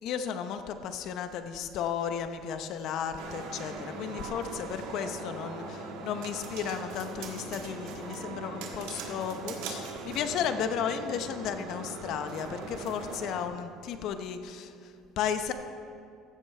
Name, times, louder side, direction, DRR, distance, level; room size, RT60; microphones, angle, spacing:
voice 1, 0.0-15.5, left 8 dB, 60° left, 9 dB, 0.8 m, -34 dB
sound 1, 3.2-13.4, right 3 dB, 80° right, 1.4 m, -40 dB
15.0 x 8.3 x 3.3 m, 2.4 s
cardioid pair, 120°, 0 cm